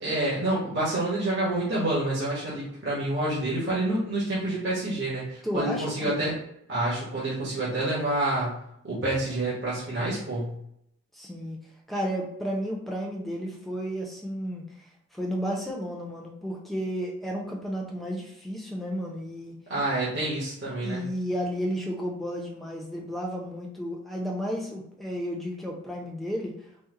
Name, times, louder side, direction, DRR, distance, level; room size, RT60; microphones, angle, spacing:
voice 1, 0.0-6.3 6.7-8.5 8.8-10.5 19.7-21.0, right 1 dB, 50° right, -8 dB, 1.2 m, -28 dB
voice 2, 5.4-6.2 11.1-11.6 11.9-14.6 15.1-19.5 20.8-26.5, equal, ahead, -2 dB, 0.5 m, -32 dB
4.1 x 2.1 x 3.7 m, 0.76 s
head